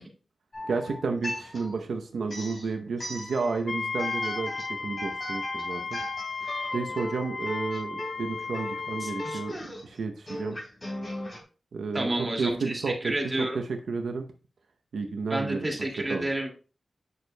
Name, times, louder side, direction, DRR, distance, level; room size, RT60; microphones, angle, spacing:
sound 1, 0.5-1.8 2.2-3.6 4.0-11.4, equal, 30° left, 3.1 m, -38 dB
voice 1, 0.7-6.0 6.4-9.5 9.8-10.6 11.7-12.1 12.4-13.1 13.4-14.3 14.9-15.7 16.1-16.2, right 4 dB, 90° right, 5 dB, 0.7 m, -31 dB
Wind instrument woodwind instrument, 3.7-9.6, left 4 dB, 45° left, 0.5 m, -34 dB
voice 2, 9.0-9.4 11.9-13.6 15.3-16.5, right 1 dB, 25° right, 1 dB, 2.2 m, -30 dB
9.3 x 6.3 x 2.2 m, 0.36 s
wide cardioid pair, 100°, 0 cm